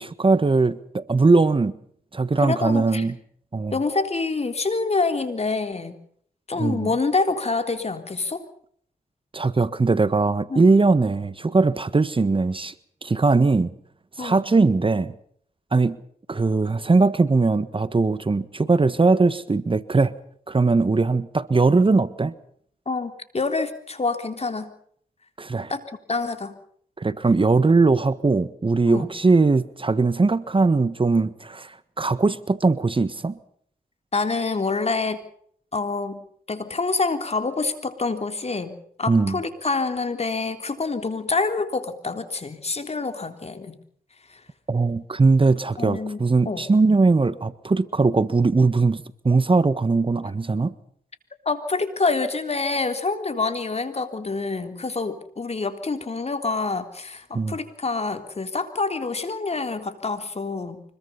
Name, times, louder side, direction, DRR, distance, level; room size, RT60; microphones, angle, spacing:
voice 1, 0.0-1.7 2.1-3.1 3.5-3.7 6.6-6.9 9.3-12.7 13.0-13.7 14.2-15.1 15.7-16.0 16.3-20.1 20.5-22.3 25.4-25.7 27.0-33.3 39.1-39.4 44.7-50.7 57.3-57.5, right 3 dB, 35° right, 14 dB, 1.4 m, -20 dB
voice 2, 2.4-3.0 3.7-5.9 6.5-8.5 10.5-10.6 14.2-14.4 22.9-24.7 25.7-25.8 26.1-26.6 28.9-29.1 34.1-35.2 35.7-38.7 39.0-43.8 44.3-44.4 45.8-46.6 51.5-60.8, left 3 dB, 45° left, 8 dB, 3.6 m, -26 dB
25.0 x 22.0 x 5.7 m, 0.63 s
cardioid pair, 65°, 15 cm